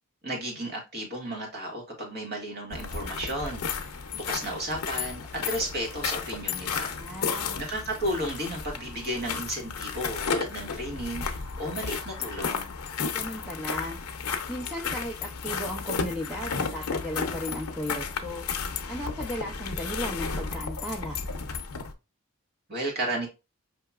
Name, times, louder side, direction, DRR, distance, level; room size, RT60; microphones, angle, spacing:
voice 1, 0.2-7.2 7.6-12.7 22.7-23.3, right 1 dB, 45° right, 1.7 m, -33 dB
sound 1, 2.7-21.9, left 5 dB, 90° left, 0.6 m, -33 dB
sound 2, 3.2-21.6, left 3 dB, 65° right, 1.4 m, -48 dB
voice 2, 6.9-7.6 13.1-14.0 14.5-18.5 18.9-21.2, equal, ahead, 0.5 m, -35 dB
5.5 x 2.8 x 2.4 m
head